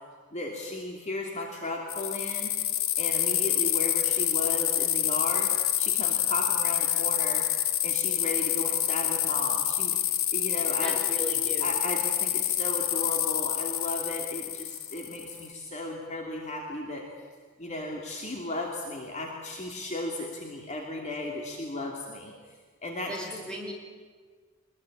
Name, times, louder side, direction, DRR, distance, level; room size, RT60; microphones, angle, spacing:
voice 1, 0.3-2.5 3.0-5.5 5.8-7.4 7.8-11.0 11.6-17.1 17.6-22.3 22.8-23.1, left 2 dB, 35° left, 0 dB, 2.8 m, -35 dB
sound 1, 1.9-15.5, left 12 dB, 90° left, 1.3 m, -27 dB
voice 2, 10.8-11.7 23.1-23.7, right 1 dB, 5° left, -1 dB, 5.7 m, -37 dB
23.5 x 21.5 x 8.8 m, 1.6 s
head